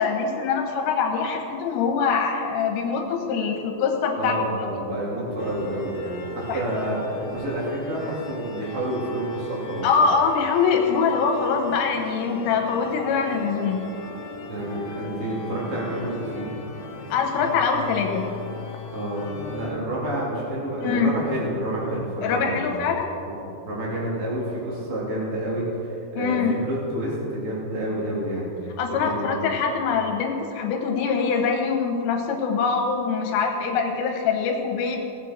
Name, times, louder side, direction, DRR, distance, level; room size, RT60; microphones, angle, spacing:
voice 1, 0.0-4.3 6.5-6.6 9.8-13.9 17.1-18.3 20.8-21.1 22.2-23.1 26.2-26.6 28.8-35.0, left 5 dB, 85° left, 2 dB, 3.8 m, -23 dB
voice 2, 4.2-9.9 14.5-16.5 18.9-22.7 23.2-28.5 29.0-29.5, right 1 dB, 35° right, -6 dB, 3.1 m, -29 dB
sound 1, 5.4-19.7, left 3 dB, 65° left, 2.5 m, -38 dB
18.5 x 7.9 x 4.5 m, 2.9 s
omnidirectional pair, 5.6 m